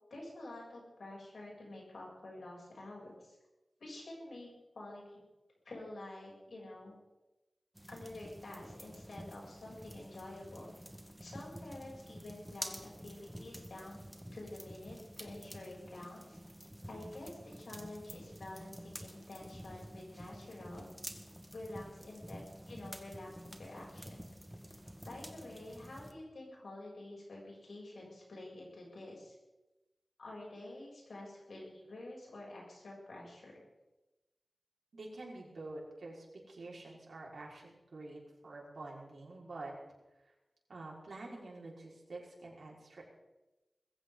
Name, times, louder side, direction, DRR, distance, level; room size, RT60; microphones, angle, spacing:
voice 1, 0.1-3.4 3.8-5.2 5.6-6.9 7.9-10.7 11.2-14.0 14.3-16.4 16.9-20.9 21.5-22.4 22.7-24.2 25.0-29.3 30.2-33.5, left 2 dB, 85° left, -3 dB, 7.5 m, -48 dB
sound 1, 7.7-26.1, equal, 5° right, 1.6 m, -49 dB
voice 2, 34.9-39.7 40.7-43.0, right 2 dB, 85° right, -3 dB, 5.0 m, -48 dB
21.5 x 15.5 x 4.0 m, 1.1 s
wide cardioid pair, 95°, 0 cm